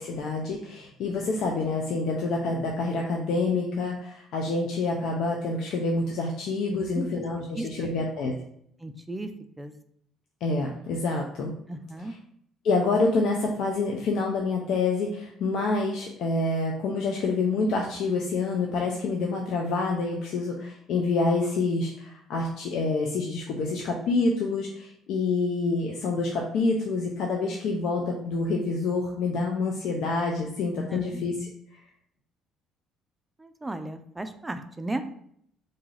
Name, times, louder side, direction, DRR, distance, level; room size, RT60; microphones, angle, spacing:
voice 1, 0.0-8.3 10.4-11.5 12.6-31.3, left 3 dB, 70° left, 0 dB, 0.4 m, -27 dB
voice 2, 6.7-7.2 7.5-7.9 8.8-9.3 9.6-9.7 11.7-12.2 30.9-31.2 33.4-35.0, right 2 dB, 15° right, 8 dB, 0.3 m, -35 dB
2.6 x 2.3 x 3.2 m, 0.68 s
supercardioid pair, 65°, 0 cm